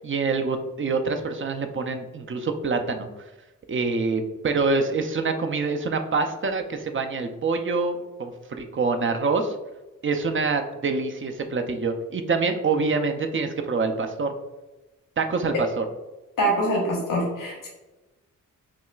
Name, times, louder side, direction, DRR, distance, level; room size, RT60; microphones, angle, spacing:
voice 1, 0.0-3.1 3.7-9.5 10.0-14.3 15.2-15.8, right 4 dB, 35° right, 6 dB, 0.5 m, -26 dB
voice 2, 16.4-17.7, right 1 dB, 70° left, -2 dB, 1.3 m, -24 dB
6.0 x 2.2 x 2.4 m, 1.1 s
cardioid pair, 50°, 35 cm